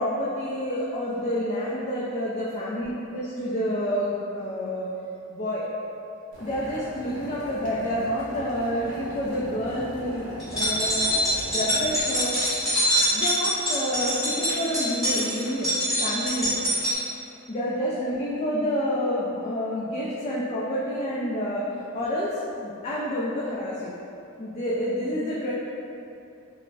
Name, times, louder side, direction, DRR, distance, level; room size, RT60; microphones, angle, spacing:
voice 1, 0.0-4.9 5.3-5.6 6.4-11.1 11.5-12.4 13.1-16.6 17.5-21.6 21.9-24.0 24.4-25.5, equal, 30° left, -7 dB, 0.3 m, -28 dB
Boiling, 6.3-12.0, equal, 65° right, 1.0 m, -40 dB
sound 1, 10.4-16.9, equal, ahead, 1.4 m, -24 dB
4.8 x 2.0 x 2.3 m, 2.7 s
head